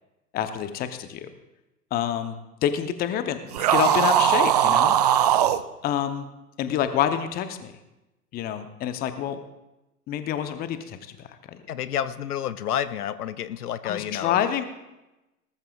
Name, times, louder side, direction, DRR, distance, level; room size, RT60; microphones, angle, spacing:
voice 1, 0.3-1.3 1.9-5.0 5.8-6.3 6.6-7.7 8.3-9.4 10.1-11.6 13.8-14.6, left 10 dB, 20° left, 10 dB, 0.8 m, -27 dB
sound 1, 3.5-5.6, right 10 dB, 30° right, 0.4 m, -19 dB
voice 2, 11.7-14.4, left 10 dB, 70° left, 14 dB, 0.7 m, -29 dB
18.5 x 14.0 x 2.4 m, 0.98 s
figure-of-eight pair, 110°, 47 cm